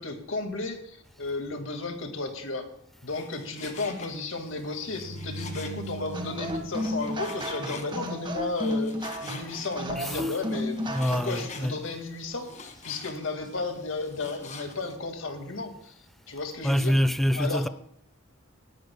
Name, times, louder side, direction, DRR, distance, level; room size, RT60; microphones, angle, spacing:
voice 1, 0.0-2.7 3.0-8.9 9.2-15.9 16.3-16.9 17.3-17.7, left 3 dB, 70° left, 2.1 m, -33 dB
Frying (food), 3.1-15.0, left 4 dB, 35° left, 1.7 m, -46 dB
sound 1, 4.9-8.1, right 2 dB, 70° right, 1.1 m, -42 dB
sound 2, 6.1-11.5, left 1 dB, 25° right, 1.5 m, -33 dB
voice 2, 10.0-10.4 10.9-11.8 16.6-17.7, equal, ahead, 0.5 m, -26 dB
19.0 x 11.5 x 2.3 m
head